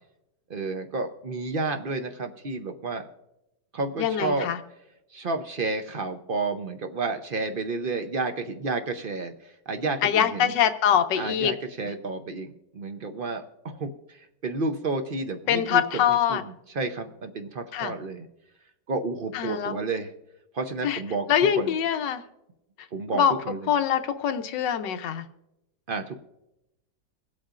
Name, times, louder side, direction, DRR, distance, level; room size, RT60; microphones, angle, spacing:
voice 1, 0.5-3.1 3.7-4.5 5.1-10.5 11.2-18.3 18.9-20.1 20.5-21.3 21.6-21.8 22.9-23.7 25.9-26.2, right 3 dB, 50° right, 6 dB, 0.6 m, -31 dB
voice 2, 4.0-4.6 10.0-11.5 15.5-16.4 17.7-17.9 19.3-19.7 20.8-21.0 21.3-22.2 23.1-23.3 23.7-25.2, left 9 dB, 80° left, 9 dB, 1.4 m, -23 dB
25.5 x 8.4 x 2.5 m, 0.89 s
omnidirectional pair, 1.9 m